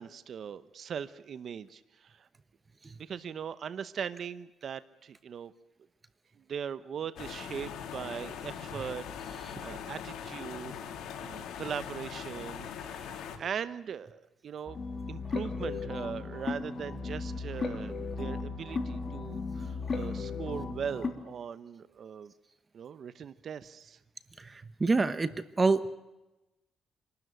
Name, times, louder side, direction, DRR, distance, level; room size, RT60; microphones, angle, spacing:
voice 1, 0.0-2.3 3.0-5.5 6.5-10.7 11.2-14.8 15.1-22.3 22.7-24.0, right 7 dB, 55° right, 14 dB, 0.8 m, -40 dB
sound 1, 7.2-13.4, left 8 dB, 80° left, 2.6 m, -41 dB
sound 2, 14.7-21.1, left 4 dB, 40° left, 3.3 m, -36 dB
voice 2, 24.4-25.3 25.6-25.9, right 3 dB, 30° right, 13 dB, 1.0 m, -26 dB
26.0 x 12.5 x 9.2 m, 1.0 s
cardioid pair, 90°, 0 cm